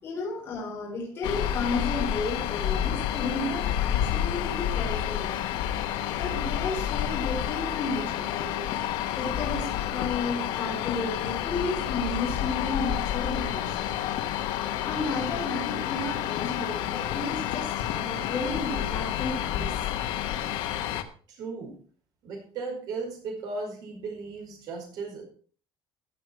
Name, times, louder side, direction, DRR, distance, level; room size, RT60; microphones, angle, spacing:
voice 1, 0.0-5.6 6.2-8.6 9.2-13.9 14.8-19.9, left 3 dB, 30° left, -4 dB, 4.3 m, -33 dB
sound 1, 1.2-21.0, left 11 dB, 75° left, 1.2 m, -29 dB
voice 2, 21.3-21.8 22.2-25.2, right 4 dB, 55° right, 1 dB, 5.0 m, -36 dB
15.5 x 7.9 x 4.6 m, 0.43 s
cardioid pair, 180°, 8 cm